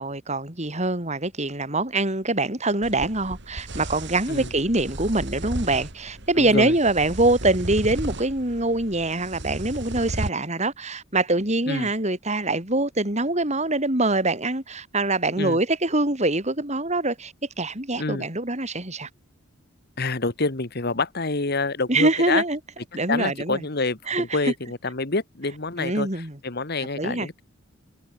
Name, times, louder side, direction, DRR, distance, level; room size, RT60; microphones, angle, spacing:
voice 1, 0.0-19.1 21.9-22.6 22.9-23.6 24.1-24.5 25.8-26.4 27.0-27.3, right 2 dB, 35° right, 4.6 m, -24 dB
sound 1, 2.8-10.3, right 1 dB, 60° right, 3.5 m, -35 dB
voice 2, 6.4-6.7 11.7-11.9 15.4-15.6 18.0-18.3 20.0-22.4 23.1-26.1 26.4-27.4, left 3 dB, 50° left, 1.7 m, -27 dB
head